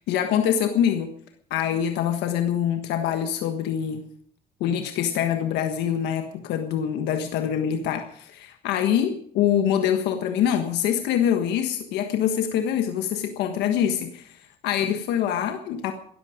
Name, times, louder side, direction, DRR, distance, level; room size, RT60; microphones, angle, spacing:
voice 1, 0.1-1.1 1.5-4.0 4.6-14.3 14.6-15.9, left 9 dB, 85° left, 6 dB, 1.5 m, -24 dB
19.0 x 14.0 x 5.1 m, 0.63 s
cardioid pair, 110°, 17 cm